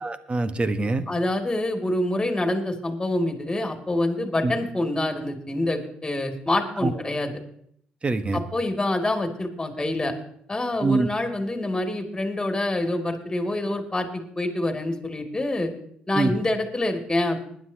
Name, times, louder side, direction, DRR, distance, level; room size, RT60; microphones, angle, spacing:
voice 1, 0.0-1.0 4.4-4.5 6.8-6.9 8.0-8.4 10.8-11.1 16.1-16.4, right 3 dB, 30° right, 11 dB, 1.3 m, -24 dB
voice 2, 1.1-7.3 8.3-10.1 10.5-15.7 16.1-17.4, left 1 dB, 20° left, 4 dB, 2.7 m, -26 dB
20.5 x 10.5 x 2.9 m, 0.68 s
hypercardioid pair, 55°, 4 cm